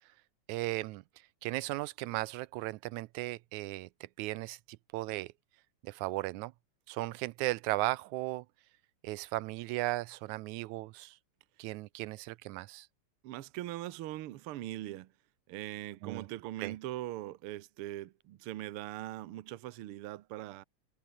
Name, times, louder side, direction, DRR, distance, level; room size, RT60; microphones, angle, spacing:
voice 1, 0.5-1.0 1.4-3.9 4.2-4.6 4.9-5.3 5.8-6.5 6.9-8.5 9.0-11.2 11.6-12.9 16.0-16.3 16.6-16.7, right 19 dB, 85° right, 2.0 m, -36 dB
voice 2, 13.2-15.1 15.5-20.6, right 15 dB, 65° right, 1.4 m, -41 dB
omnidirectional pair, 3.4 m